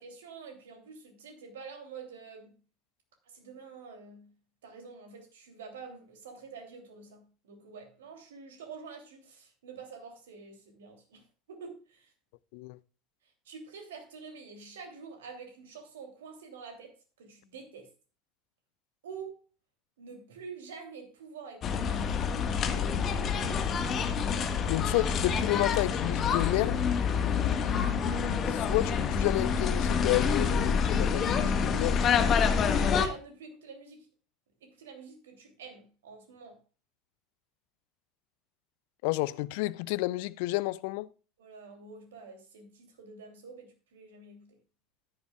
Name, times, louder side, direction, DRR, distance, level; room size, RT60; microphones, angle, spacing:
voice 1, 0.0-2.6 3.3-4.3 4.6-12.1 13.4-16.9 17.2-17.9 19.0-19.4 20.0-23.0 27.5-27.8 32.6-34.1 34.6-36.6 41.4-44.6, right 5 dB, 70° right, 3.0 m, -47 dB
sound 1, 21.6-33.1, left 6 dB, 40° left, 1.5 m, -27 dB
voice 2, 24.7-26.8 28.5-32.0 39.0-41.1, left 19 dB, 60° left, 0.5 m, -30 dB
13.5 x 10.5 x 2.4 m
figure-of-eight pair, 70°, 0 cm